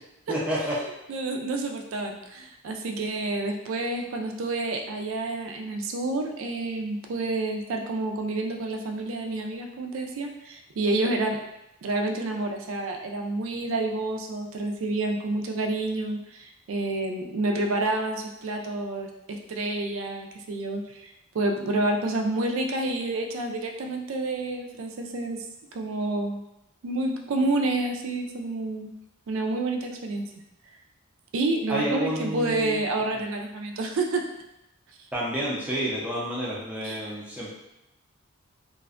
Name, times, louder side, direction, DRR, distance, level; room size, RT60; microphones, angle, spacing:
voice 1, 0.3-0.8 31.7-32.8 35.1-37.5, equal, 5° right, -7 dB, 0.5 m, -29 dB
voice 2, 1.1-11.4 11.8-25.5 25.7-26.4 26.8-28.9 29.3-30.2 31.3-34.2 36.8-37.1, right 2 dB, 70° right, 2 dB, 0.4 m, -29 dB
2.5 x 2.1 x 2.4 m, 0.92 s
head